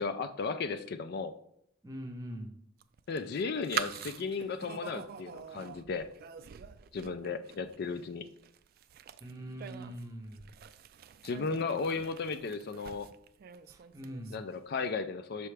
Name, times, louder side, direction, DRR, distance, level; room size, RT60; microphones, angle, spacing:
voice 1, 0.0-1.3 3.1-6.1 6.9-8.3 11.2-13.1 14.3-15.5, left 4 dB, 55° left, 9 dB, 0.4 m, -35 dB
voice 2, 1.8-2.5 9.2-10.4 13.9-14.4, equal, 20° right, 5 dB, 0.7 m, -42 dB
sound 1, 2.8-14.6, right 8 dB, 50° right, 0.3 m, -44 dB
6.0 x 5.6 x 3.3 m, 0.72 s
head